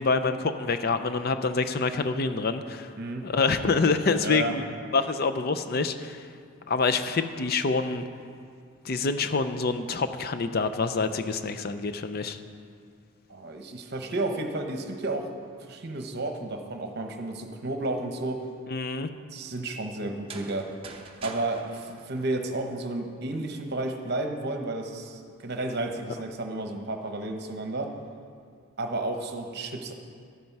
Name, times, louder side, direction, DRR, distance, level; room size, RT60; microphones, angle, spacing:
voice 1, 0.0-2.9 3.2-4.6 4.9-6.3 6.7-8.0 8.8-12.4 18.7-19.1, left 4 dB, 45° left, 10 dB, 0.5 m, -26 dB
voice 2, 3.0-3.3 4.2-4.5 13.3-15.3 15.6-18.5 19.3-20.7 21.2-27.9 28.8-29.9, right 2 dB, 50° right, 4 dB, 0.9 m, -32 dB
sound 1, 20.1-23.0, right 4 dB, 25° right, 0.7 m, -45 dB
12.0 x 9.5 x 4.6 m, 2.2 s
head